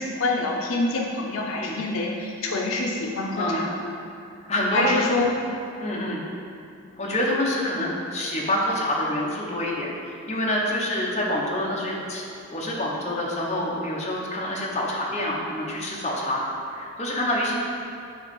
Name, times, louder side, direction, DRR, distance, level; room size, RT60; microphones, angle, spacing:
voice 1, 0.0-3.9 4.7-5.3, left 2 dB, 70° left, 0 dB, 0.5 m, -26 dB
voice 2, 4.5-5.0 5.8-6.2 7.0-12.2 12.5-16.4 16.7-17.6, left 1 dB, 30° left, -4 dB, 0.9 m, -27 dB
7.9 x 3.1 x 5.3 m, 2.5 s
head